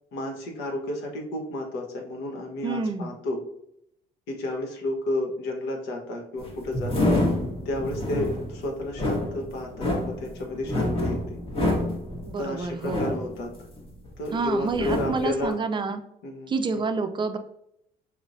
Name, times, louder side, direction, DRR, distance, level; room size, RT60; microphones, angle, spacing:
voice 1, 0.1-3.4 4.3-7.1 7.6-11.4 12.4-13.5 14.2-15.6 16.2-16.8, left 1 dB, 85° left, 1 dB, 1.1 m, -32 dB
voice 2, 2.6-3.1 12.3-13.1 14.3-16.0 16.5-17.4, right 4 dB, 30° right, 8 dB, 0.4 m, -28 dB
sound 1, 6.4-14.3 14.6-15.4, left 1 dB, 35° left, 1.3 m, -28 dB
5.3 x 3.1 x 2.6 m, 0.76 s
cardioid pair, 110°, 17 cm